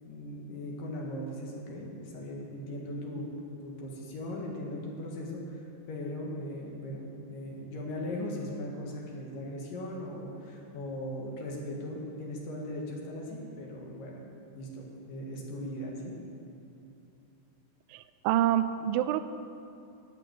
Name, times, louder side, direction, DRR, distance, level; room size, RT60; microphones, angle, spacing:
voice 1, 0.1-3.3 3.6-14.2 14.5-16.2, left 1 dB, 70° left, -1 dB, 3.3 m, -38 dB
voice 2, 17.9-19.2, right 12 dB, 85° right, 12 dB, 2.3 m, -27 dB
12.0 x 6.8 x 9.3 m, 2.8 s
omnidirectional pair, 4.1 m